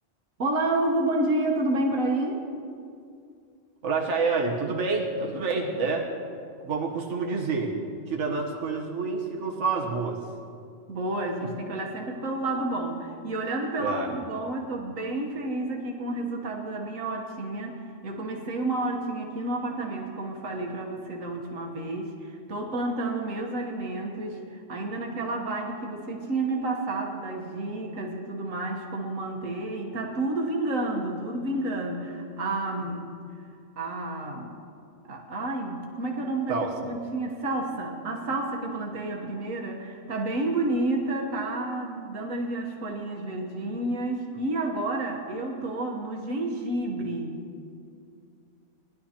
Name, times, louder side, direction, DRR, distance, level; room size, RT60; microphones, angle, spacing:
voice 1, 0.4-2.4 10.9-33.1 33.8-34.5 35.1-47.4, right 2 dB, 90° right, 0 dB, 1.6 m, -30 dB
voice 2, 3.8-6.1 6.6-7.7 8.1-10.2 13.8-14.1 36.5-36.7, right 4 dB, 65° right, -1 dB, 1.5 m, -28 dB
19.0 x 11.5 x 2.9 m, 2.4 s
omnidirectional pair, 1.3 m